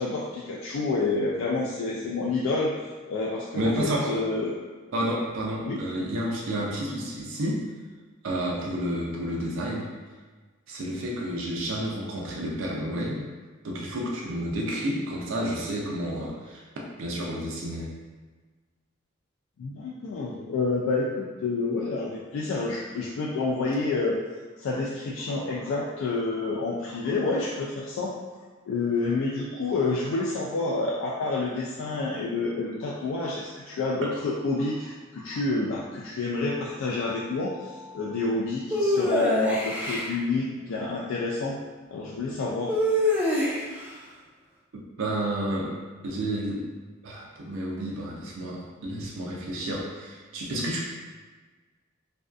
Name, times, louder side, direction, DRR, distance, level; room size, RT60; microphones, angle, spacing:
voice 1, 0.0-2.7 3.1-4.6 5.6-5.8 19.6-24.2 24.6-28.1 28.7-41.6 41.9-42.8, left 3 dB, 70° left, -4 dB, 0.3 m, -28 dB
voice 2, 3.5-4.2 4.9-7.7 8.2-9.9 10.7-13.2 13.6-16.6 17.0-18.0 34.0-34.1 44.7-45.8 46.0-46.7 47.0-50.9, right 1 dB, 70° right, -3 dB, 0.4 m, -30 dB
sound 1, 38.7-40.1 42.7-43.8, left 1 dB, 10° right, 0.4 m, -24 dB
2.5 x 2.2 x 2.3 m, 1.4 s
head